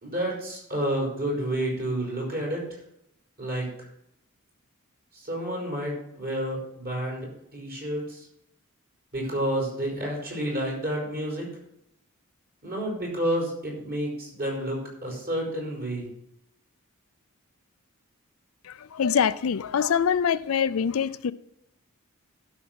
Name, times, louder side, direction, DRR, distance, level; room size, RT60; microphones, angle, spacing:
voice 1, 0.0-2.6 3.4-3.7 5.1-8.3 9.1-11.5 12.6-16.1, right 1 dB, 45° right, 5.1 m, -30 dB
voice 2, 18.6-21.3, left 7 dB, 65° left, 0.4 m, -24 dB
12.0 x 6.0 x 6.2 m
head